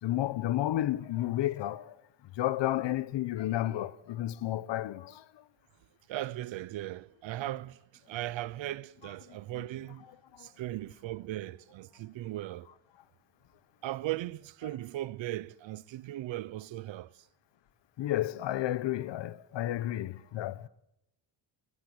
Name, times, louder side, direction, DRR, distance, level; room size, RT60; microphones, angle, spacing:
voice 1, 0.0-2.0 2.4-5.4 9.5-9.7 10.3-10.5 18.0-20.7, left 14 dB, 75° left, 1.2 m, -32 dB
voice 2, 6.1-10.1 10.4-12.7 13.8-17.3, right 15 dB, 90° right, 1.0 m, -38 dB
29.0 x 22.0 x 7.9 m
cardioid pair, 160°, 44 cm